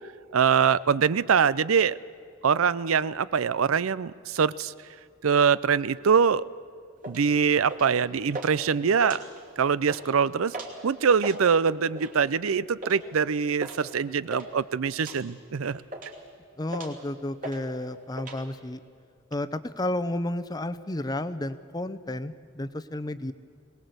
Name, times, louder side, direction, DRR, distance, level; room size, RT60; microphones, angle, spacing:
voice 1, 0.3-2.0 2.4-4.7 5.2-6.4 7.1-9.2 9.6-10.6 10.8-15.8, right 6 dB, 85° right, 18 dB, 0.5 m, -23 dB
sound 1, 7.0-7.2 7.7-8.0 8.3-8.5 8.9-9.5 9.8-10.0 10.5-10.8 11.1-11.4 12.0-12.2 12.8-13.0 13.6-13.8 14.0-14.5 15.0-15.2 15.6-16.2 16.7-17.0 17.4-17.6 17.9-18.4, right 2 dB, 40° right, 2.8 m, -37 dB
voice 2, 16.6-18.8 19.3-23.3, left 1 dB, 20° left, 11 dB, 0.7 m, -32 dB
22.5 x 19.0 x 8.0 m, 2.2 s
head